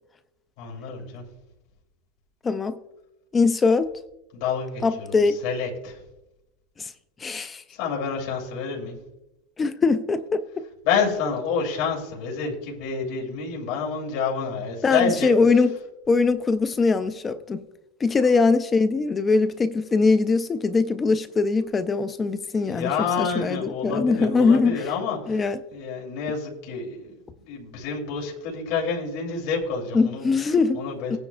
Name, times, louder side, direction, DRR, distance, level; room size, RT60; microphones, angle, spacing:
voice 1, 0.6-1.2 4.3-6.0 7.7-8.9 10.8-15.3 22.6-27.1 27.5-30.3 30.7-31.2, left 5 dB, 55° left, 2.7 m, -28 dB
voice 2, 2.4-2.8 3.3-3.9 4.8-5.4 6.8-6.9 7.2-7.6 9.6-10.4 14.8-15.7 16.1-17.6 18.0-22.9 23.2-24.8 25.3-25.6 29.9-30.8 31.1-31.2, left 4 dB, 15° left, 0.4 m, -21 dB
18.0 x 9.8 x 2.4 m
supercardioid pair, 165°, 0 cm